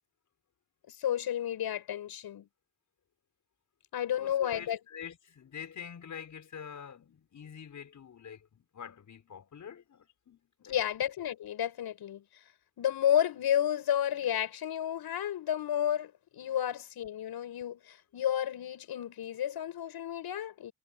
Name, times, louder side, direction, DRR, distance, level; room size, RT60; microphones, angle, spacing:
voice 1, 0.9-2.5 3.9-4.8 10.7-12.2 12.8-20.7, left 10 dB, 80° left, 7.9 m, -31 dB
voice 2, 4.1-11.0 16.5-16.6, left 7 dB, 50° left, 6.2 m, -46 dB
wide cardioid pair, 145°, 37 cm